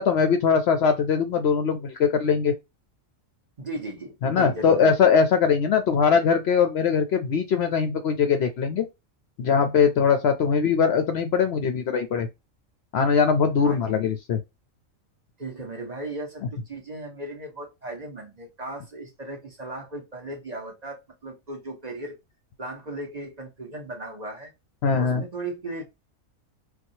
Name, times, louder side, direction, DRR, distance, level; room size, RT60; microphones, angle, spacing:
voice 1, 0.0-2.5 4.2-8.8 9.4-12.3 12.9-14.4 24.8-25.2, left 6 dB, 65° left, 0.7 m, -21 dB
voice 2, 3.6-4.9 13.6-14.0 15.4-22.2 22.6-24.5 24.9-25.8, right 2 dB, 35° right, 0.9 m, -36 dB
4.2 x 2.3 x 2.7 m
omnidirectional pair, 1.4 m